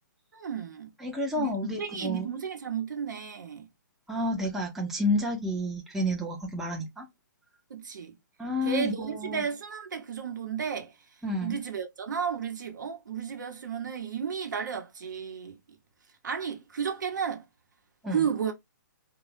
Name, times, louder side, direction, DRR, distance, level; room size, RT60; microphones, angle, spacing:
voice 1, 0.3-0.9 1.4-3.7 7.7-8.2 8.6-10.9 11.4-15.6 16.2-17.4 18.1-18.5, right 7 dB, 70° right, 0.8 m, -33 dB
voice 2, 1.0-2.3 4.1-7.1 8.4-9.4 11.2-11.6 18.0-18.2, left 1 dB, 5° right, 0.5 m, -30 dB
2.3 x 2.0 x 3.1 m
hypercardioid pair, 145°, 10 cm